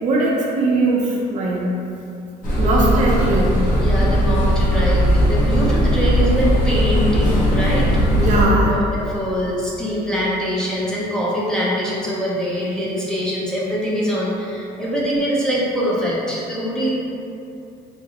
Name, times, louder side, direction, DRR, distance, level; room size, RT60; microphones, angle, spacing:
voice 1, 0.0-1.7 2.6-3.5 8.2-8.8, right 2 dB, 45° right, -3 dB, 0.5 m, -19 dB
sound 1, 2.4-8.5, equal, 50° left, 0.9 m, -18 dB
voice 2, 2.6-2.9 3.2-3.4 3.8-8.2 8.7-16.9, equal, 5° left, -7 dB, 0.6 m, -23 dB
3.7 x 2.0 x 2.8 m, 2.6 s
cardioid pair, 110°, 17 cm